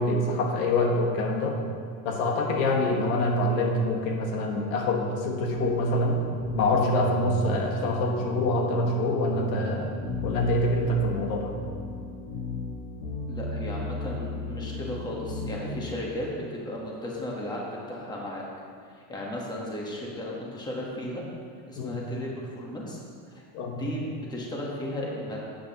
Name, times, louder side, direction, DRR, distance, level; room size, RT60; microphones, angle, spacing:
voice 1, 0.0-1.6 2.0-6.2 6.5-9.9 10.2-11.5 21.8-22.0 23.5-23.8, left 1 dB, 85° left, 1 dB, 1.5 m, -25 dB
sound 1, 5.4-16.4, left 3 dB, 30° left, 1.8 m, -36 dB
voice 2, 13.3-18.4 18.9-21.2 21.7-23.0 23.7-25.4, left 1 dB, 10° left, -3 dB, 1.2 m, -35 dB
12.0 x 8.5 x 2.9 m, 2.2 s
cardioid pair, 155°, 41 cm